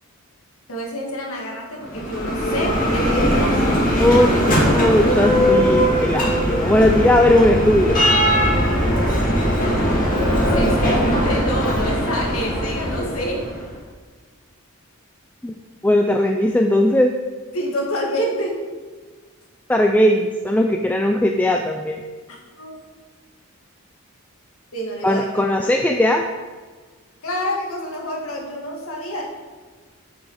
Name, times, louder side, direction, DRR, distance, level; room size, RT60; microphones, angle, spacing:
voice 1, 0.7-3.6 9.4-13.5 17.5-18.6 22.6-22.7 24.7-25.5 27.2-29.2, equal, 80° left, -1 dB, 2.1 m, -28 dB
Bell, 1.8-13.6, equal, 40° left, 2.2 m, -19 dB
voice 2, 4.0-8.0 15.4-15.5 15.8-17.2 19.7-22.0 25.0-26.3, left 1 dB, 5° left, 3 dB, 0.3 m, -18 dB
8.3 x 6.3 x 4.8 m, 1.4 s
head